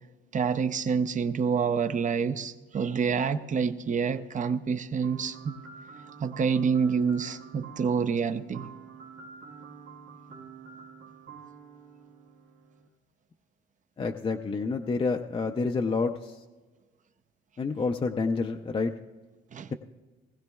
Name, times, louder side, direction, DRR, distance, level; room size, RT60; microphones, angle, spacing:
voice 1, 0.3-5.6 6.2-8.7 19.5-19.7, right 6 dB, 40° right, 11 dB, 0.6 m, -27 dB
sound 1, 5.0-12.9, right 6 dB, 75° right, 1.7 m, -48 dB
voice 2, 14.0-16.4 17.6-18.9, left 4 dB, 30° left, 4 dB, 0.5 m, -28 dB
19.5 x 15.5 x 2.3 m, 1.3 s
cardioid pair, 90°, 20 cm